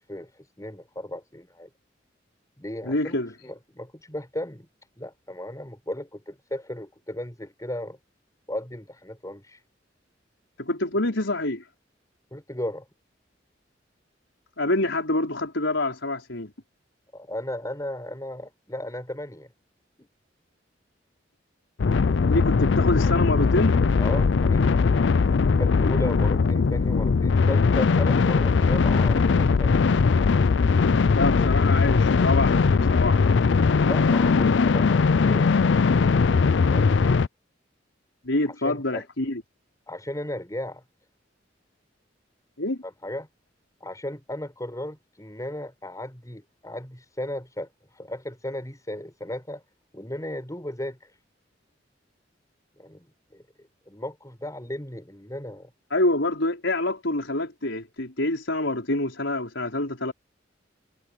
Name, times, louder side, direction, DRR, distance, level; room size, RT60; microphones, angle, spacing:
voice 1, 0.0-1.7 2.6-3.2 3.4-4.7 5.0-8.0 8.5-9.6 12.3-12.9 17.1-19.5 20.0-20.1 24.0-24.7 25.6-29.7 33.9-35.5 38.5-39.0 39.9-40.8 42.8-43.3 43.8-49.6 49.9-51.1 52.8-55.7, left 1 dB, 20° left, 6.9 m, -35 dB
voice 2, 2.8-3.3 10.6-11.7 14.6-16.5 22.3-23.8 31.1-33.3 38.2-39.4 42.6-42.8 55.9-60.1, left 2 dB, 85° left, 4.8 m, -26 dB
sound 1, 21.8-37.3, left 5 dB, 70° left, 0.5 m, -20 dB
head